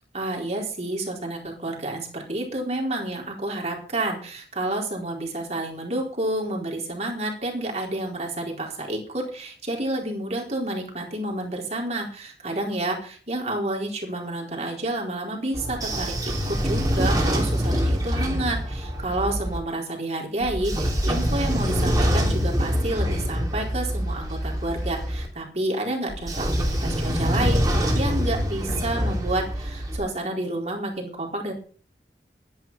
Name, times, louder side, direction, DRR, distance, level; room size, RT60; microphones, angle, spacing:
voice 1, 0.1-31.5, right 1 dB, 40° right, 0 dB, 4.2 m, -29 dB
Train / Sliding door, 15.5-19.6 20.4-25.3 26.1-30.0, equal, 20° right, 3.1 m, -25 dB
12.5 x 10.5 x 5.7 m, 0.42 s
head